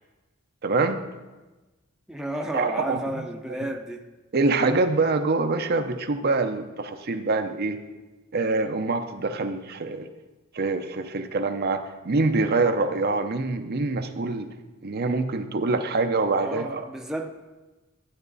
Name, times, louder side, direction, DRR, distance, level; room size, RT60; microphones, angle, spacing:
voice 1, 0.6-1.0 2.5-3.0 3.6-3.7 4.3-7.8 8.3-10.1 10.5-14.5 14.8-16.8, right 3 dB, 50° right, 6 dB, 0.7 m, -25 dB
voice 2, 2.1-4.0 16.4-17.3, right 1 dB, 5° right, 2 dB, 0.7 m, -32 dB
12.0 x 8.8 x 4.0 m, 1.2 s
head